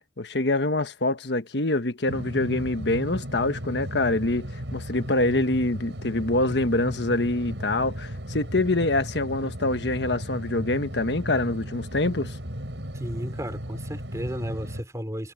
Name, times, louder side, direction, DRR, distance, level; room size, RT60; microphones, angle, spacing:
voice 1, 0.2-12.4, left 2 dB, 80° left, 1.4 m, -25 dB
sound 1, 2.1-14.8, equal, 85° right, 8.0 m, -36 dB
voice 2, 12.9-15.3, equal, 20° right, 3.6 m, -33 dB
head